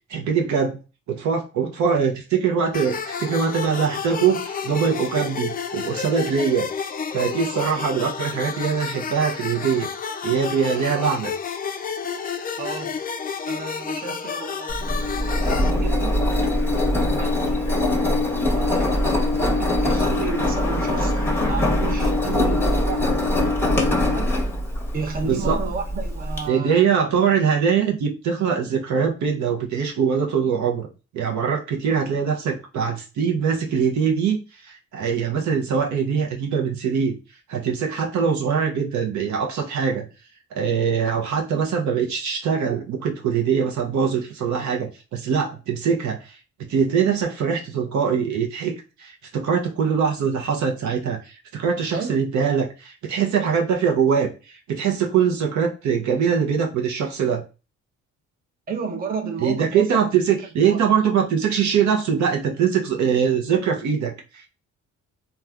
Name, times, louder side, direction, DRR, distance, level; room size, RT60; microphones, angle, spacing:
voice 1, 0.1-0.8 1.1-6.7 7.1-9.9 10.2-11.3 25.3-25.6 26.5-30.9 31.1-34.4 34.6-37.1 37.5-40.0 40.5-46.4 46.7-48.7 49.0-57.4 59.4-64.5, right 6 dB, 70° right, 0.7 m, -22 dB
sound 1, 2.7-15.7, left 6 dB, 30° left, 0.4 m, -30 dB
voice 2, 12.6-13.0 13.5-16.2 16.6-16.9 17.2-17.8 18.6-24.3 24.9-26.8 51.9-52.2 58.7-60.1 60.7-60.8, right 5 dB, 30° right, 0.6 m, -32 dB
Engine, 14.7-26.4, left 1 dB, 10° left, 0.8 m, -22 dB
3.2 x 2.3 x 2.3 m
cardioid pair, 90°, 30 cm